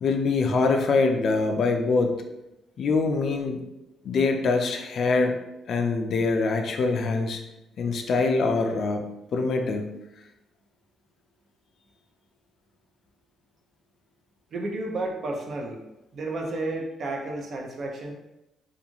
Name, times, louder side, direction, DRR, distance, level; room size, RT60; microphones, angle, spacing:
voice 1, 0.0-2.1 2.8-3.6 4.0-5.3 5.7-7.4 7.8-9.0 9.3-9.9, left 3 dB, 60° left, 4 dB, 0.4 m, -24 dB
voice 2, 14.5-15.8 16.1-18.1, right 2 dB, 55° right, 1 dB, 0.5 m, -31 dB
2.5 x 2.4 x 2.8 m, 0.91 s
cardioid pair, 90°, 0 cm